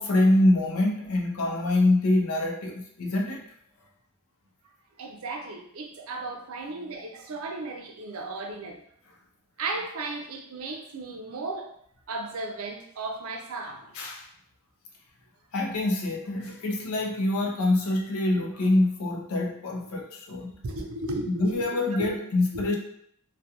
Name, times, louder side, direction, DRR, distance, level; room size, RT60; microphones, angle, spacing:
voice 1, 0.0-3.4 13.9-14.2 15.5-20.5 21.3-22.8, left 2 dB, 85° left, 1 dB, 0.5 m, -25 dB
voice 2, 5.0-8.8 9.6-11.7 12.1-13.9 20.4-22.2 22.5-22.8, right 3 dB, 85° right, 3 dB, 0.5 m, -35 dB
2.3 x 2.2 x 2.8 m, 0.69 s
head